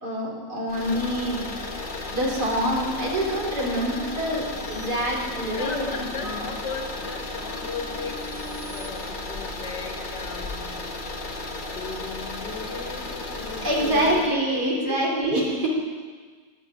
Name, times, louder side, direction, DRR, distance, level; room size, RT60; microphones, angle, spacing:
voice 1, 0.0-1.5 2.1-6.5 13.6-15.7, right 1 dB, 55° right, -3 dB, 3.6 m, -26 dB
sound 1, 0.7-14.4, left 2 dB, 30° left, 1.1 m, -34 dB
sound 2, 3.9-5.8 6.4-8.9, equal, 25° right, 3.1 m, -45 dB
voice 2, 5.6-8.3 8.7-10.9 11.7-15.2, left 5 dB, 65° left, 3 dB, 2.2 m, -36 dB
10.5 x 10.5 x 9.8 m, 1.5 s
omnidirectional pair, 2.0 m